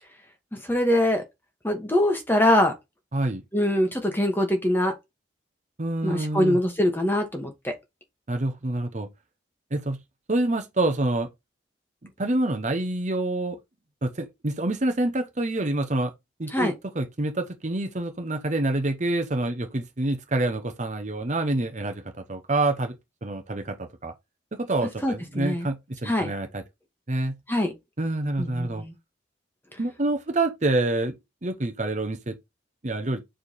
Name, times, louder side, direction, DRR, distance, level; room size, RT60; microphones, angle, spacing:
voice 1, 0.5-1.2 1.6-2.7 3.5-4.9 6.0-7.7 16.5-16.7 25.0-25.7 26.0-26.3 27.5-27.7 28.4-28.9, left 1 dB, 10° left, 1.3 m, -23 dB
voice 2, 5.8-6.6 8.3-9.1 9.7-10.0 10.3-11.3 12.0-13.6 14.0-16.1 16.4-23.0 23.2-24.1 24.5-26.6 27.1-27.4 28.0-28.8 29.8-31.1 31.4-32.4 32.8-33.2, right 2 dB, 40° right, 0.9 m, -27 dB
5.0 x 4.6 x 4.1 m
head